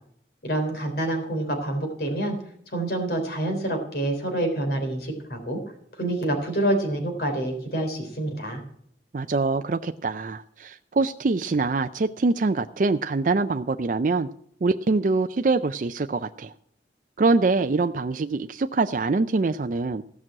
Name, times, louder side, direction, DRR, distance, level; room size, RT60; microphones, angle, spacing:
voice 1, 0.4-2.4 2.7-5.6 6.0-8.6, right 1 dB, 55° left, 4 dB, 3.6 m, -27 dB
voice 2, 9.1-14.3 14.6-16.5 17.2-20.0, right 3 dB, 45° right, 8 dB, 0.4 m, -24 dB
16.0 x 6.1 x 7.5 m, 0.67 s
head